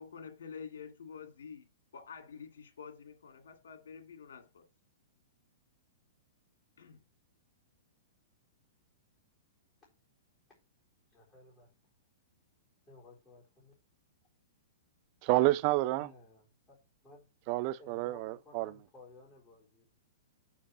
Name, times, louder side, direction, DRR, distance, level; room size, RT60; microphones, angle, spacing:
voice 1, 0.0-1.7 1.9-4.7 6.8-7.0, left 6 dB, 90° left, 2.0 m, -48 dB
voice 2, 11.1-11.7 12.9-13.7 15.9-16.8 17.0-17.3 17.8-19.9, left 2 dB, 20° left, 4.3 m, -57 dB
voice 3, 15.2-16.1 17.5-18.7, right 17 dB, 40° right, 0.5 m, -29 dB
7.2 x 4.9 x 7.2 m
hypercardioid pair, 155°, 0 cm